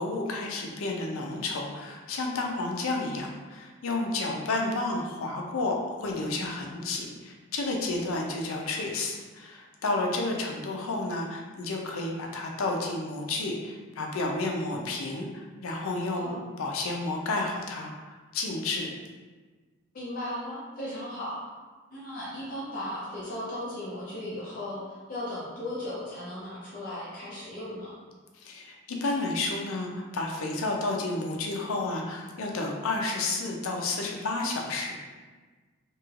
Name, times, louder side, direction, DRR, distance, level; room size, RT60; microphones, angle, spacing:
voice 1, 0.0-18.9 28.3-34.9, left 2 dB, 90° left, 1 dB, 0.5 m, -31 dB
voice 2, 19.9-21.4 21.9-28.0, left 1 dB, 40° left, -9 dB, 0.6 m, -36 dB
3.0 x 2.9 x 2.4 m, 1.4 s
head